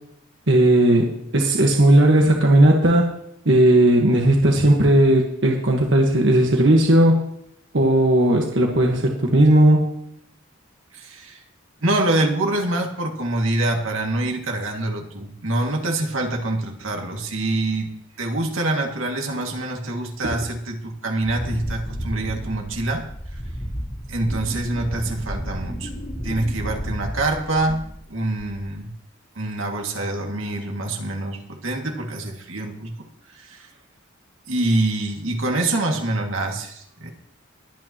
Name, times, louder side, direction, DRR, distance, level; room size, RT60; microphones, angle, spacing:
voice 1, 0.5-3.1 3.4-7.2 7.7-9.9 20.2-20.3, right 1 dB, 65° right, 1 dB, 1.5 m, -16 dB
voice 2, 10.9-11.4 11.8-17.9 18.2-23.0 23.3-23.4 24.1-25.9 26.2-28.9 29.4-32.9 33.3-33.7 34.5-37.1, right 2 dB, 85° right, 1 dB, 2.3 m, -25 dB
Wind, 21.2-28.1 28.4-28.8, equal, 35° left, 3.0 m, -32 dB
22.0 x 8.9 x 3.0 m, 0.74 s
head